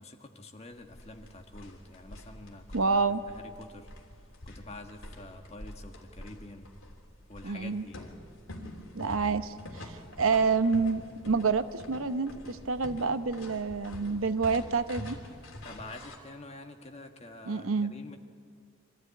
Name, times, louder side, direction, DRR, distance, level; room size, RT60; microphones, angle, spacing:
voice 1, 0.0-3.9 4.2-6.7 7.3-8.1 10.3-10.4 15.6-18.2, left 2 dB, 30° left, 5 dB, 1.5 m, -47 dB
sound 1, 0.7-16.2, left 1 dB, 70° left, 3.2 m, -46 dB
voice 2, 2.7-3.2 7.4-7.8 8.9-15.2 17.5-17.9, right 4 dB, 80° right, 11 dB, 0.9 m, -28 dB
24.5 x 14.5 x 9.5 m, 2.2 s
head